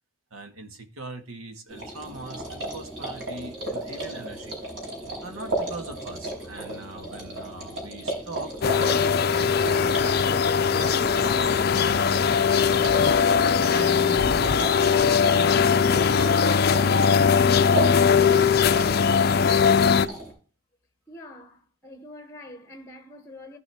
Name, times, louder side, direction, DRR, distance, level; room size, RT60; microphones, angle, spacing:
voice 1, 0.3-4.6 5.2-13.0 13.6-17.9, right 2 dB, 85° right, 1.8 m, -40 dB
sound 1, 1.7-20.3, right 1 dB, 60° right, 4.9 m, -35 dB
sound 2, 8.6-20.1, left 6 dB, 45° left, 0.4 m, -20 dB
voice 2, 21.1-23.6, left 1 dB, 15° left, 1.0 m, -45 dB
15.5 x 5.4 x 3.6 m
head